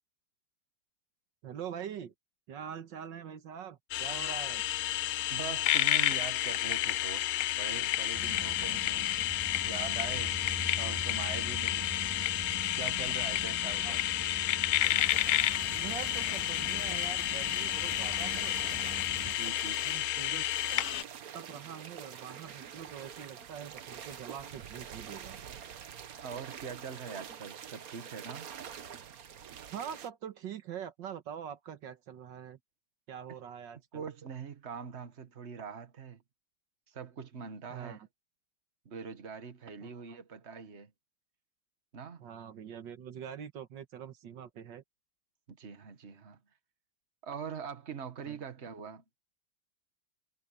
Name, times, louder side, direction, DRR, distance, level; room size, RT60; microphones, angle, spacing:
voice 1, 1.4-2.1 2.5-4.6 13.6-14.0 15.7-18.6 19.8-20.5 21.3-25.4 29.7-32.6 33.1-34.1 37.7-38.1 39.8-40.2 42.2-44.8 48.3-48.4, right 8 dB, 85° right, 2.0 m, -44 dB
sound 1, 3.9-21.0, left 14 dB, 80° left, 0.7 m, -31 dB
voice 2, 5.3-9.3 9.6-10.4 10.8-12.0 12.8-14.0 19.2-19.8 26.2-28.5 33.9-36.2 36.9-38.0 38.9-40.9 41.9-42.2 45.5-46.4 47.2-49.0, right 6 dB, 40° right, 1.8 m, -43 dB
sound 2, 8.1-19.3, right 1 dB, 10° right, 2.2 m, -44 dB
sound 3, 14.8-30.1, right 8 dB, 55° right, 1.4 m, -46 dB
omnidirectional pair, 1.9 m